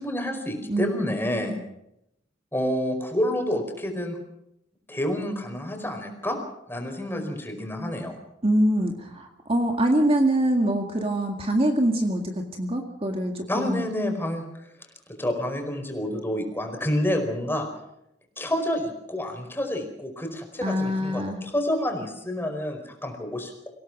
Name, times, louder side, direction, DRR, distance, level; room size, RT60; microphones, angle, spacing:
voice 1, 0.0-1.6 2.5-4.2 4.9-6.4 6.7-8.1 13.5-14.4 15.2-17.7 18.4-23.7, left 1 dB, 10° left, 4 dB, 4.8 m, -28 dB
voice 2, 8.4-13.8 20.6-21.4, right 1 dB, 30° right, 3 dB, 2.0 m, -24 dB
25.5 x 17.5 x 6.2 m, 0.80 s
head